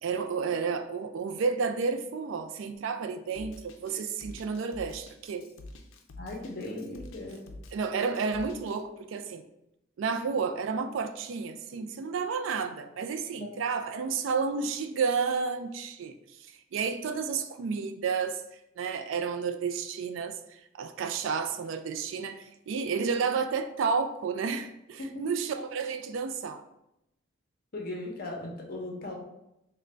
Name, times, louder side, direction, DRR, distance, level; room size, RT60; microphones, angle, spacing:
voice 1, 0.0-5.5 7.7-9.4 10.0-18.4 18.8-26.6, right 5 dB, 75° right, 0.3 m, -31 dB
Drum kit, 3.3-8.8, left 2 dB, 90° left, 0.4 m, -47 dB
voice 2, 6.2-7.6 13.4-13.5 27.7-29.1, left 2 dB, 50° left, 0.7 m, -38 dB
3.8 x 2.2 x 3.2 m
head